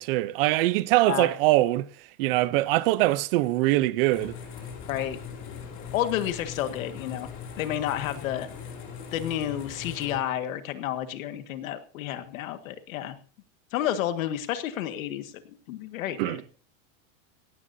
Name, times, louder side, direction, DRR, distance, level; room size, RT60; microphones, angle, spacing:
voice 1, 0.0-4.4 16.2-16.4, right 17 dB, 45° right, 0.7 m, -23 dB
sound 1, 4.1-10.2, left 6 dB, 30° left, 2.9 m, -40 dB
voice 2, 4.9-5.2 5.9-7.3 7.6-8.5 9.1-13.2 13.7-16.4, left 11 dB, 80° left, 1.8 m, -30 dB
17.0 x 16.0 x 2.7 m
supercardioid pair, 175°, 40 cm